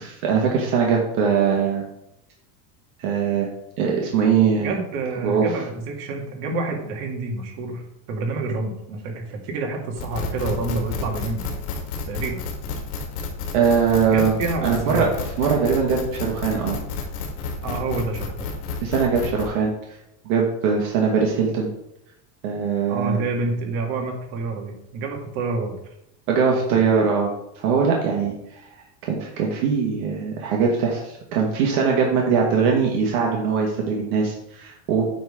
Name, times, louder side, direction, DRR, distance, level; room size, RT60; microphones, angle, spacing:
voice 1, 0.0-1.8 3.0-3.5 3.8-4.7 5.2-5.5 13.5-14.3 14.6-16.8 18.8-19.7 20.2-21.7 22.4-23.2 26.3-27.3 27.6-28.3 29.0-35.0, right 6 dB, 75° right, -1 dB, 1.7 m, -21 dB
voice 2, 4.6-7.8 8.1-11.4 12.1-12.4 14.0-15.1 17.6-18.5 22.9-25.7, right 3 dB, 60° right, 1 dB, 2.1 m, -28 dB
sound 1, 10.0-19.5, left 4 dB, 70° left, 2.0 m, -31 dB
8.6 x 3.7 x 5.0 m, 0.83 s
supercardioid pair, 130°, 44 cm